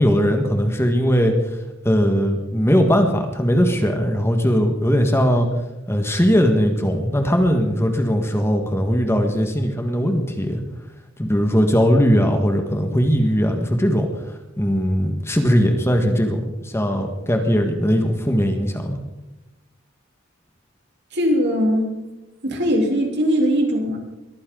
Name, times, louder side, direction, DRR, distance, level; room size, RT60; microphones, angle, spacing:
voice 1, 0.0-1.6 1.8-5.5 5.9-10.6 11.2-14.1 14.6-19.0, equal, 15° left, 4 dB, 1.6 m, -19 dB
voice 2, 21.1-21.9 22.4-24.0, equal, 60° right, 1 dB, 3.7 m, -20 dB
22.5 x 14.5 x 3.9 m, 1.0 s
head